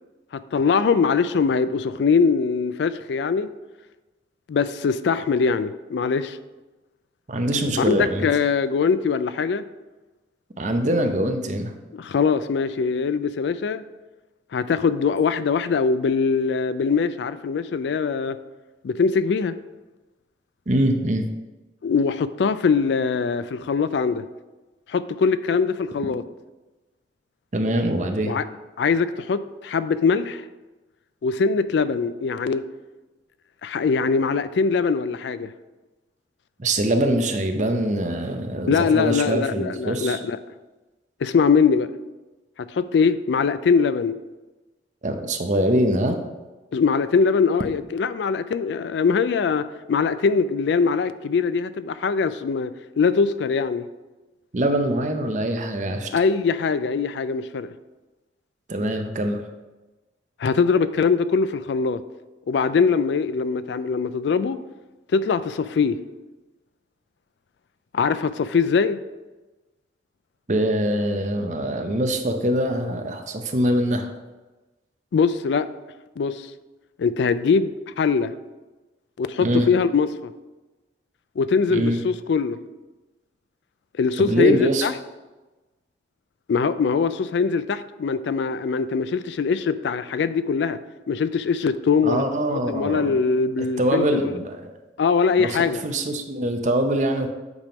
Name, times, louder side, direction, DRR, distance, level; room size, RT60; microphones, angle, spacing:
voice 1, 0.3-3.5 4.5-6.4 7.8-9.6 11.9-13.8 14.5-18.4 18.8-19.6 21.8-24.2 24.9-26.2 28.2-28.4 28.8-30.4 31.2-32.7 33.6-35.5 38.7-40.4 41.2-41.9 42.7-44.2 46.7-53.9 56.1-57.7 60.4-62.0 62.5-64.6 65.1-66.0 67.9-69.0 75.1-75.7 76.2-76.5 77.0-78.3 79.2-80.3 81.4-82.6 84.0-84.9 86.5-90.8 91.1-92.2 92.5-94.4 95.0-95.8, left 5 dB, 75° left, 13 dB, 0.3 m, -22 dB
voice 2, 7.3-8.3 10.6-11.7 20.7-21.3 27.5-28.4 36.6-40.2 45.0-46.2 54.5-56.1 58.7-59.4 70.5-74.1 79.4-79.7 81.7-82.0 84.2-84.8 92.0-93.1 93.8-94.7 95.4-97.3, right 1 dB, 40° right, 6 dB, 0.7 m, -23 dB
8.2 x 3.6 x 5.0 m, 1.1 s
head